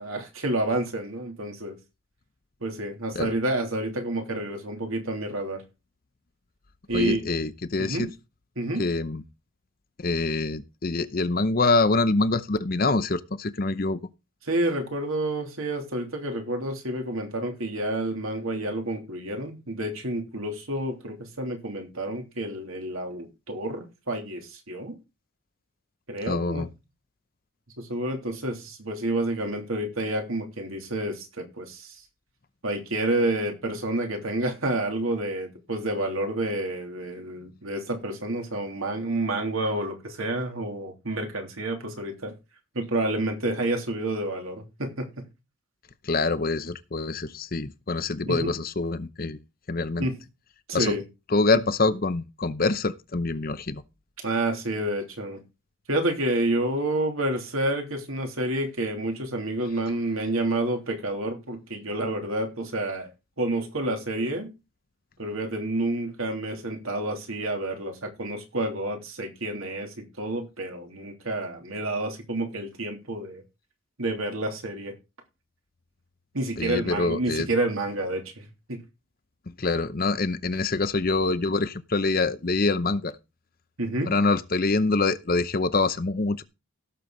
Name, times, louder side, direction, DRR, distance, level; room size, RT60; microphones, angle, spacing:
voice 1, 0.0-1.8 2.6-5.6 6.9-7.2 7.8-8.1 8.6-8.8 14.4-24.9 26.1-26.7 27.8-32.0 32.6-42.3 42.7-45.3 48.2-48.5 50.0-50.1 50.7-51.0 54.2-55.4 55.9-63.1 63.4-64.5 65.2-73.4 74.0-74.9 76.3-78.8 83.8-84.1, right 1 dB, 75° right, 3.1 m, -29 dB
voice 2, 6.9-8.1 8.8-9.2 10.0-14.0 26.3-26.7 46.0-49.4 49.7-50.1 50.7-51.0 51.3-53.8 76.6-77.5 79.5-83.1 84.1-86.4, left 3 dB, 40° left, 0.7 m, -25 dB
16.5 x 7.0 x 3.9 m
head